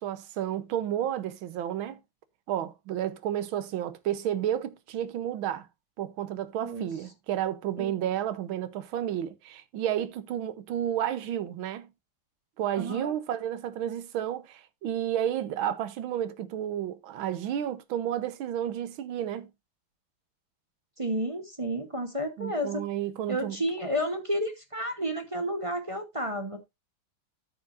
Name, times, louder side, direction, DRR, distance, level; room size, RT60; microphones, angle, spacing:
voice 1, 0.0-2.0 2.5-5.7 6.0-11.9 12.6-19.5 22.4-23.6, right 11 dB, 80° right, 1.7 m, -31 dB
voice 2, 12.8-13.1 21.0-22.8 23.3-26.6, equal, 25° right, 0.8 m, -31 dB
13.5 x 6.2 x 2.5 m
omnidirectional pair, 2.2 m